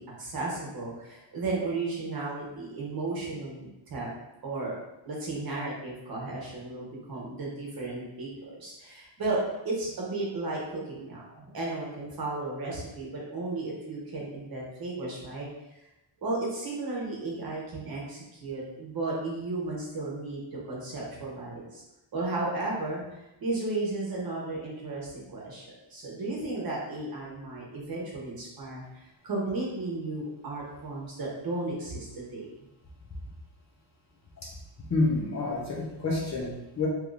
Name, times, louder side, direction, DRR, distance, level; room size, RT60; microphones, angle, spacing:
voice 1, 0.0-3.6 3.9-4.1 4.4-4.8 5.0-15.5 16.2-21.8 22.1-32.5, right 2 dB, 45° right, -4 dB, 1.0 m, -34 dB
voice 2, 34.9-36.9, left 3 dB, 35° left, -4 dB, 0.7 m, -28 dB
3.6 x 3.0 x 2.5 m, 0.94 s
wide cardioid pair, 145°, 49 cm